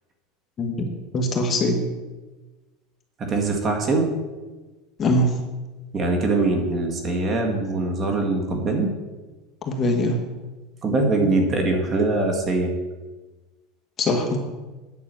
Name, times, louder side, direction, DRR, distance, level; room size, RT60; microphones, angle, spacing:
voice 1, 0.6-0.9 1.1-1.8 5.0-5.3 9.7-10.2 14.0-14.4, left 1 dB, 30° left, 3 dB, 1.5 m, -22 dB
voice 2, 3.2-4.1 5.9-8.9 10.8-12.7, right 2 dB, 30° right, 2 dB, 1.8 m, -22 dB
9.6 x 6.1 x 7.6 m, 1.2 s
supercardioid pair, 135°, 0 cm